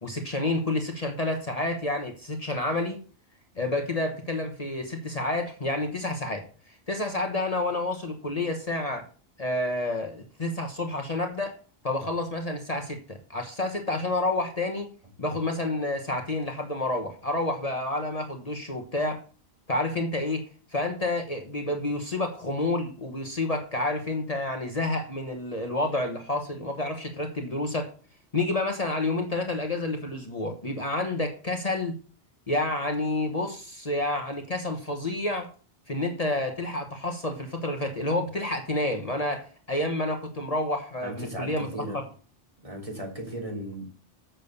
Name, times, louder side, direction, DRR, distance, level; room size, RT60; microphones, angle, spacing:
voice 1, 0.0-3.0 3.5-9.0 9.4-11.5 11.8-14.9 15.2-19.2 19.7-20.4 20.7-27.9 28.3-31.9 32.5-35.5 35.9-41.7, left 2 dB, 40° left, 1.3 m, -29 dB
voice 2, 41.0-42.1 42.6-43.9, right 1 dB, 35° right, 3.4 m, -36 dB
7.5 x 7.0 x 6.9 m
omnidirectional pair, 1.0 m